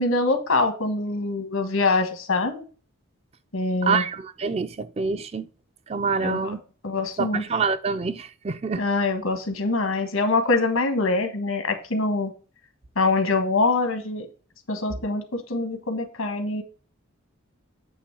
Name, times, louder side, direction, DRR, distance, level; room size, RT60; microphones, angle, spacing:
voice 1, 0.0-2.6 3.5-4.0 6.2-6.5 6.8-7.4 8.7-12.3 12.9-14.3 14.7-16.6, left 3 dB, 85° left, 1.4 m, -24 dB
voice 2, 3.8-5.5 5.9-6.6 7.2-8.9, right 5 dB, 30° right, 0.4 m, -26 dB
8.8 x 3.1 x 6.0 m
head